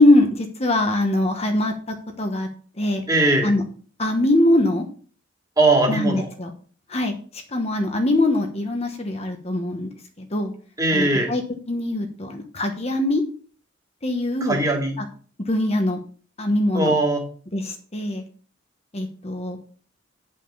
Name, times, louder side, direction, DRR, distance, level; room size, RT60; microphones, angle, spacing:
voice 1, 0.0-2.5 2.8-3.0 3.4-3.6 4.0-4.9 5.9-6.5 6.9-9.9 10.2-10.5 10.9-11.4 11.7-13.2 14.0-14.6 15.0-15.1 15.5-16.0 16.4-16.9 17.5-18.2 18.9-19.6, left 1 dB, 35° left, 4 dB, 1.1 m, -22 dB
voice 2, 3.1-3.5 5.6-6.3 10.8-11.3 14.4-14.9 16.7-17.2, right 2 dB, 20° right, 1 dB, 2.3 m, -20 dB
9.1 x 5.5 x 5.5 m, 0.42 s
head